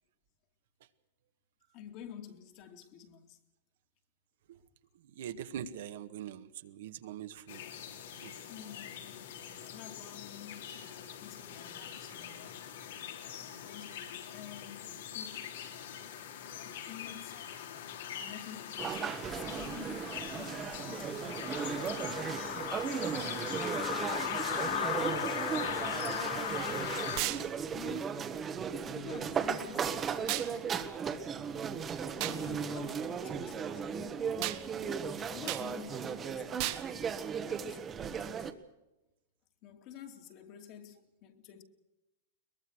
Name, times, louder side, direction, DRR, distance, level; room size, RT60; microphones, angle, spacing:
voice 1, 1.7-3.4 8.5-9.2 9.6-12.6 13.4-15.4 16.6-17.4 18.1-21.9 24.8-25.3 27.2-28.2 28.8-31.2 32.1-34.3 35.2-36.8 37.4-38.5 39.6-41.6, left 9 dB, 40° left, 2.5 m, -50 dB
voice 2, 5.2-7.8 8.2-8.4, right 10 dB, 65° right, 1.8 m, -43 dB
sound 1, 7.5-27.2, left 9 dB, 70° left, 3.6 m, -40 dB
sound 2, 18.8-38.5, right 6 dB, 20° right, 1.3 m, -36 dB
sound 3, 27.2-27.4 30.3-30.5 32.2-32.4 34.4-34.6 35.5-35.7 36.6-36.8, right 17 dB, 40° right, 1.4 m, -34 dB
22.5 x 22.0 x 6.5 m
supercardioid pair, 160°, 0 cm